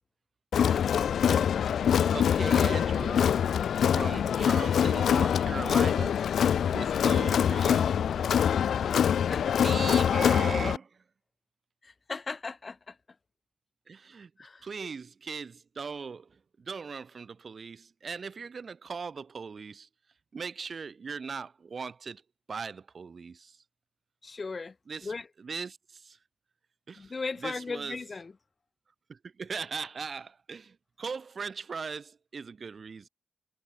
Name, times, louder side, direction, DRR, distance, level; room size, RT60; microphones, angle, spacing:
Crowd, 0.5-10.8, left 8 dB, 90° left, 0.6 m, -24 dB
voice 1, 2.1-3.2 3.9-6.2 6.7-8.0 9.6-11.0 13.9-14.3 14.6-19.9 20.3-22.2 22.5-23.6 24.9-25.1 25.4-26.2 26.9-27.1 27.4-28.0 29.1-33.1, right 5 dB, 60° right, 6.9 m, -39 dB
voice 2, 11.8-13.0 14.4-14.9 24.2-24.8 25.0-25.3 27.0-28.3, left 4 dB, 45° left, 3.8 m, -37 dB
cardioid pair, 65°, 0 cm